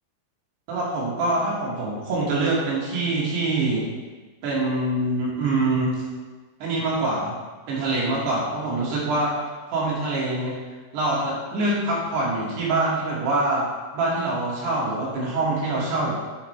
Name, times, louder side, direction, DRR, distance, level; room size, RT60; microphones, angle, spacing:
voice 1, 0.7-3.9 4.4-6.1 6.6-7.4 7.7-9.3 9.7-10.6 10.9-13.7 13.9-16.2, right 2 dB, 75° right, -6 dB, 4.6 m, -24 dB
10.0 x 9.3 x 3.4 m, 1.3 s
omnidirectional pair, 4.8 m